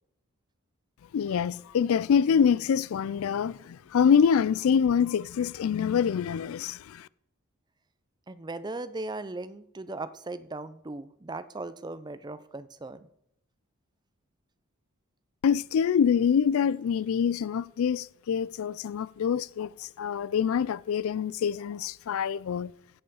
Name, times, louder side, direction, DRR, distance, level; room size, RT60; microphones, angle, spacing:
voice 1, 1.1-7.1 15.4-22.7, left 7 dB, 70° left, 0.3 m, -25 dB
voice 2, 8.3-13.1, right 2 dB, 20° right, 0.5 m, -38 dB
15.5 x 5.4 x 5.6 m
head